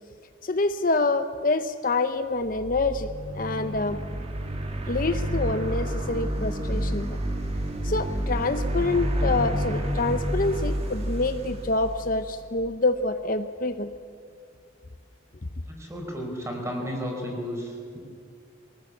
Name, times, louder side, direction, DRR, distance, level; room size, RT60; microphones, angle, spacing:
voice 1, 0.4-3.1 3.3-4.0 4.9-7.1 7.8-13.9, left 3 dB, 45° left, 9 dB, 0.7 m, -26 dB
sound 1, 2.4-12.6, right 1 dB, 30° right, 1.9 m, -29 dB
voice 2, 15.7-18.0, equal, 15° right, 1 dB, 4.5 m, -33 dB
23.5 x 19.0 x 8.4 m, 2.2 s
head